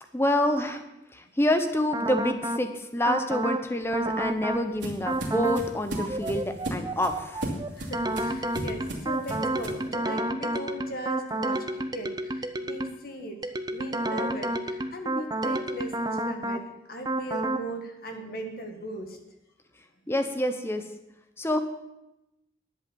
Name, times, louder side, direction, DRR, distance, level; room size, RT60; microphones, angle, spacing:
voice 1, 0.1-0.8 1.1-7.5 20.1-20.8 21.4-21.6, left 1 dB, 10° left, 8 dB, 0.8 m, -27 dB
sound 1, 1.9-2.6 3.0-3.6 3.9-4.6 5.0-5.6 6.0-13.0 13.4-16.6 17.0-17.6, right 1 dB, 20° right, 0.6 m, -30 dB
sound 2, 3.8-9.9, right 1 dB, 70° right, 2.5 m, -36 dB
voice 2, 7.8-16.6 16.9-19.2, right 1 dB, 50° left, 4 dB, 1.6 m, -39 dB
11.0 x 8.1 x 7.0 m, 0.92 s
head